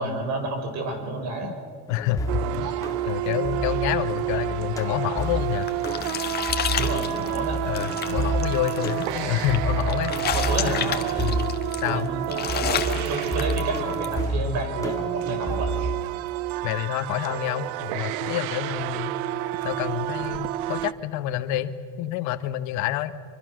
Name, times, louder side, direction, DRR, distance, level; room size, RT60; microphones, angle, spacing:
voice 1, 0.0-1.6 6.8-7.6 10.3-11.3 11.9-15.7, right 3 dB, 50° right, 5 dB, 5.9 m, -30 dB
voice 2, 1.9-2.8 3.0-5.7 7.7-10.1 10.6-10.9 11.2-12.1 16.6-19.1 19.6-23.1, left 12 dB, 55° left, 10 dB, 1.3 m, -28 dB
sound 1, 1.9-16.0, equal, 10° left, 2.1 m, -31 dB
sound 2, 2.3-20.9, right 15 dB, 65° right, 0.8 m, -30 dB
sound 3, 5.3-14.2, left 9 dB, 30° left, 1.5 m, -32 dB
25.0 x 24.5 x 6.4 m, 2.1 s
supercardioid pair, 130°, 35 cm